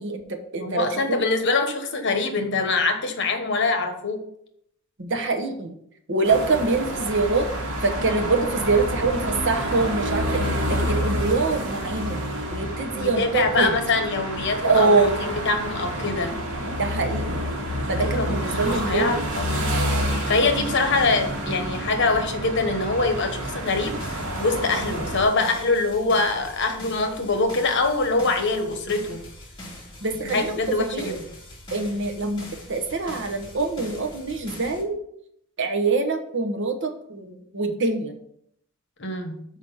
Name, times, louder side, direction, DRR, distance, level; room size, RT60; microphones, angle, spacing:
voice 1, 0.0-1.2 5.0-5.7 6.1-7.5 7.8-12.2 12.5-13.7 14.6-15.2 16.8-17.4 17.9-19.2 30.0-31.2 31.7-32.4 32.7-35.0 35.6-38.1, right 3 dB, 60° right, 5 dB, 1.0 m, -24 dB
voice 2, 0.6-4.2 10.4-10.6 12.9-16.3 18.0-19.7 20.1-24.0 24.4-29.2 30.2-31.2 39.0-39.4, left 3 dB, 55° left, 6 dB, 1.1 m, -24 dB
sound 1, 6.2-25.2, equal, 85° right, 1.8 m, -28 dB
sound 2, 23.7-34.8, left 1 dB, 20° left, 2.1 m, -42 dB
6.2 x 5.1 x 5.6 m, 0.71 s
head